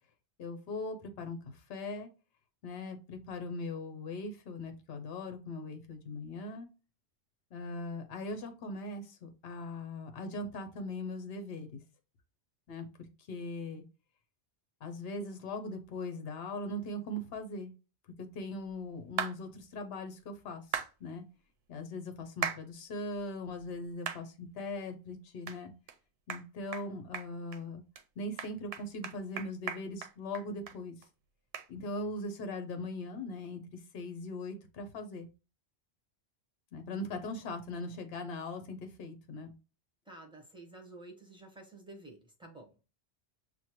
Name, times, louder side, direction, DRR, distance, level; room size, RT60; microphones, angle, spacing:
voice 1, 0.4-2.1 2.6-6.7 7.5-11.8 12.7-13.8 14.8-17.7 18.2-21.2 21.7-25.7 26.3-27.8 28.2-31.0 31.7-35.3 36.7-39.5, left 2 dB, 65° left, 7 dB, 0.9 m, -40 dB
sound 1, 19.2-19.4 20.7-20.9 22.4-22.6 23.1-23.2 24.1-24.2 24.7-24.8 25.5-25.6 25.9-26.0 26.3-26.4 26.7-26.9 27.1-27.6 28.0-28.1 28.4-30.8 31.0-31.1 31.5-31.7, right 7 dB, 70° right, 0.8 m, -36 dB
voice 2, 40.1-42.9, right 2 dB, 5° right, 0 dB, 0.9 m, -51 dB
6.1 x 2.2 x 2.9 m, 0.31 s
omnidirectional pair, 1.1 m